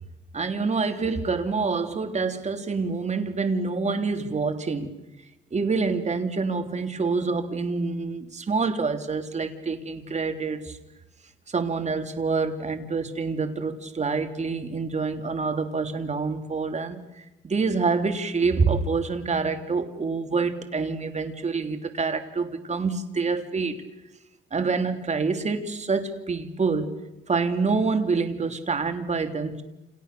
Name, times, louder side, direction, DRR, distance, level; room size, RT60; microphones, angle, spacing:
voice 1, 0.3-4.9 5.5-10.8 11.5-23.8 24.5-26.9 27.3-29.6, right 4 dB, 35° right, 3.3 m, -27 dB
30.0 x 29.0 x 6.9 m
cardioid pair, 90°, 20 cm